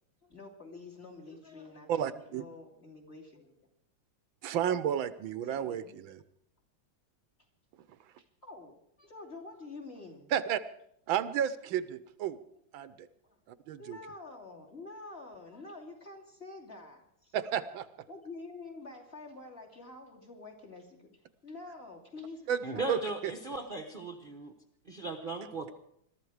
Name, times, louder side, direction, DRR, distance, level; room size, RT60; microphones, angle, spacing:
voice 1, 0.2-3.5 5.4-6.0 8.2-10.3 12.3-12.4 12.8-13.4 13.8-17.4 18.1-21.1 21.4-23.2, left 3 dB, 30° left, -1 dB, 3.0 m, -48 dB
voice 2, 1.9-2.4 4.4-6.2 10.3-10.6 11.1-12.4 12.7-13.1 13.5-14.0 17.3-17.9 22.5-22.6 22.9-23.3, right 9 dB, 80° right, 14 dB, 1.6 m, -32 dB
voice 3, 22.6-24.6 24.8-25.7, right 2 dB, 35° right, 4 dB, 1.0 m, -37 dB
21.5 x 13.0 x 4.9 m, 0.71 s
omnidirectional pair, 2.1 m